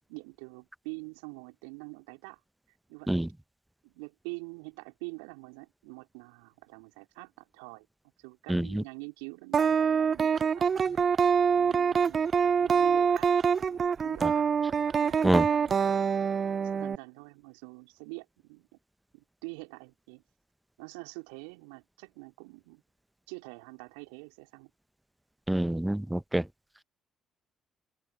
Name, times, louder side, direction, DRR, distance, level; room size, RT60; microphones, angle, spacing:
voice 1, 0.1-2.4 2.9-3.1 3.8-7.9 8.2-10.7 11.6-13.3 13.7-14.6 15.0-15.8 16.5-18.7 19.1-20.2 20.8-22.8 23.3-24.7, right 36 dB, 75° right, 4.1 m, -45 dB
voice 2, 8.5-8.8 14.2-14.3 15.2-15.4 25.5-26.4, right 1 dB, 5° right, 1.0 m, -26 dB
sound 1, 9.5-17.0, right 6 dB, 45° right, 0.6 m, -25 dB
open air
figure-of-eight pair, 45°, 0 cm